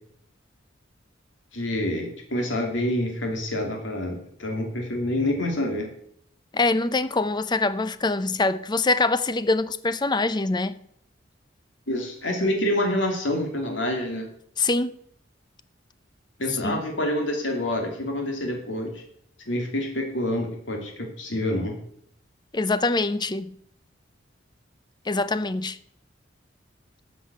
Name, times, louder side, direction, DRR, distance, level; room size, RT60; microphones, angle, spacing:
voice 1, 1.5-5.9 11.9-14.3 16.4-19.0 19.5-21.7, left 1 dB, 85° left, 2.8 m, -27 dB
voice 2, 6.5-10.8 14.6-14.9 16.6-16.8 22.5-23.6 25.1-25.8, left 3 dB, 25° left, 0.6 m, -24 dB
13.5 x 6.1 x 8.2 m
head